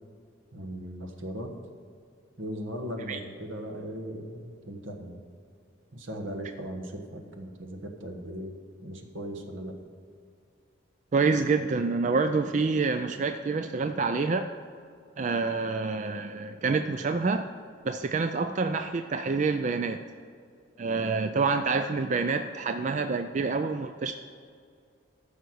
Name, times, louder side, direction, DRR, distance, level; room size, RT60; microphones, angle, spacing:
voice 1, 0.5-1.5 2.4-5.2 5.9-8.6 8.8-9.8, equal, 75° right, 4 dB, 1.4 m, -38 dB
voice 2, 11.1-14.5 15.2-17.5 17.8-20.0 20.8-24.1, right 4 dB, 35° right, 8 dB, 0.3 m, -27 dB
14.0 x 5.7 x 6.3 m, 2.3 s
head